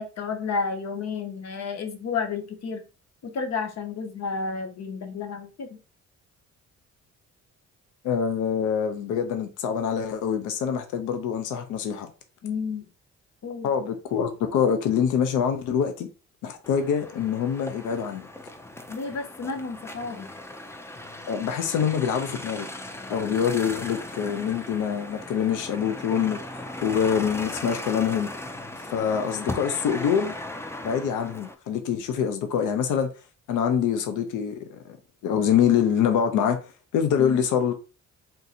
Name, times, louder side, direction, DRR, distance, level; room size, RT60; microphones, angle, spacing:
voice 1, 0.0-2.8 3.2-5.8 12.4-12.9 13.4-13.7 18.9-20.3, left 5 dB, 60° left, 1.0 m, -31 dB
voice 2, 8.0-12.1 13.6-16.1 16.4-18.3 21.3-22.7 23.1-28.3 28.9-30.4 30.8-33.1 33.5-34.8 35.2-36.6 36.9-37.7, left 8 dB, 85° left, 0.6 m, -25 dB
sound 1, 16.6-31.5, left 1 dB, 10° left, 0.5 m, -38 dB
3.8 x 2.7 x 4.0 m
cardioid pair, 90°, 30 cm